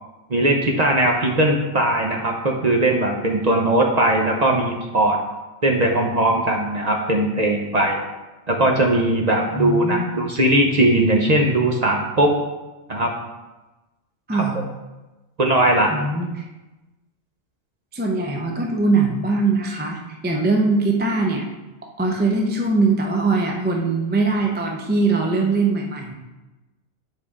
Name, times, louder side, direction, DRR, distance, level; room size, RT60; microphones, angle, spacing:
voice 1, 0.3-5.2 5.6-8.0 8.5-12.3 12.9-13.1 14.3-14.4 15.4-16.0, right 1 dB, 40° right, 1 dB, 0.7 m, -19 dB
voice 2, 9.5-10.3 14.3-14.7 15.9-16.5 17.9-21.5 22.0-26.2, right 3 dB, 15° right, 1 dB, 0.4 m, -21 dB
8.2 x 4.5 x 3.7 m, 1.1 s
omnidirectional pair, 1.4 m